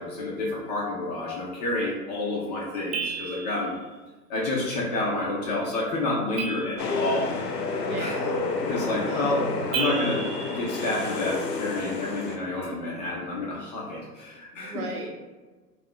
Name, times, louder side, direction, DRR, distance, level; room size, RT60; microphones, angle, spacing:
voice 1, 0.0-3.7 4.3-7.3 8.0-8.2 8.7-10.2 10.5-14.8, left 2 dB, 30° left, -4 dB, 0.4 m, -29 dB
sound 1, 2.9-3.7 6.4-7.4 9.7-11.4, right 5 dB, 40° right, 0.5 m, -34 dB
sound 2, 6.8-12.4, left 3 dB, 85° left, 0.6 m, -30 dB
voice 2, 7.8-8.4 9.1-9.5 14.6-15.2, right 2 dB, 65° right, 0 dB, 0.9 m, -35 dB
2.7 x 2.3 x 3.6 m, 1.3 s
figure-of-eight pair, 105°, 48 cm